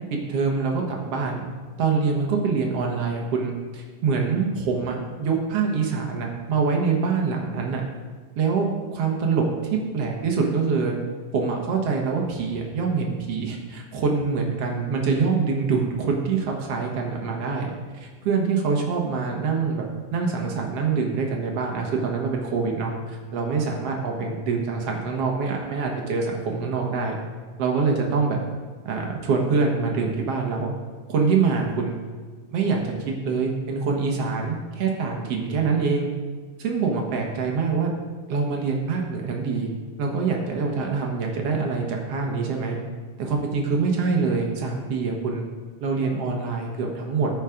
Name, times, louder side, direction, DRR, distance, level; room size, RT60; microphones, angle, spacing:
voice 1, 0.1-1.4 1.8-7.8 8.4-9.5 9.9-10.9 11.3-19.8 20.1-27.2 27.6-28.4 28.9-30.7 31.1-32.0 32.5-36.1 36.6-38.0 38.3-39.7 40.0-42.8 43.2-45.4 45.8-47.3, right 5 dB, 55° right, 1 dB, 1.9 m, -25 dB
13.0 x 5.8 x 5.0 m, 1.5 s
omnidirectional pair, 4.0 m